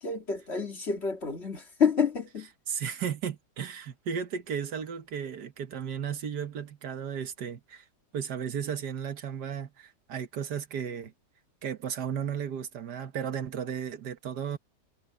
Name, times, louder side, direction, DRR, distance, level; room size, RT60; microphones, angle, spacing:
voice 1, 0.0-2.5, left 6 dB, 40° left, 2.4 m, -28 dB
voice 2, 2.7-7.8 8.1-11.1 11.6-14.6, right 8 dB, 70° right, 1.7 m, -34 dB
omnidirectional pair, 1.8 m